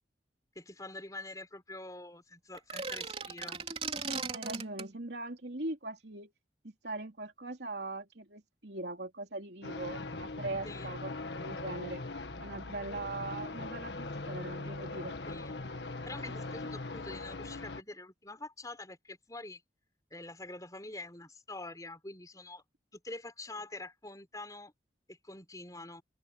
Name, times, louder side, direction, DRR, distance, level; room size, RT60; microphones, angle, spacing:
voice 1, 0.5-3.6 10.6-10.9 15.3-15.6 16.0-19.6 20.1-22.6 22.9-24.7 25.1-26.0, left 2 dB, 20° left, 4.4 m, -45 dB
sound 1, 2.5-4.9, right 5 dB, 35° right, 3.6 m, -37 dB
voice 2, 4.3-6.3 6.6-12.0 12.4-15.2, right 2 dB, 75° right, 2.9 m, -41 dB
sound 2, 9.6-17.8, left 2 dB, 80° left, 1.7 m, -40 dB
open air
head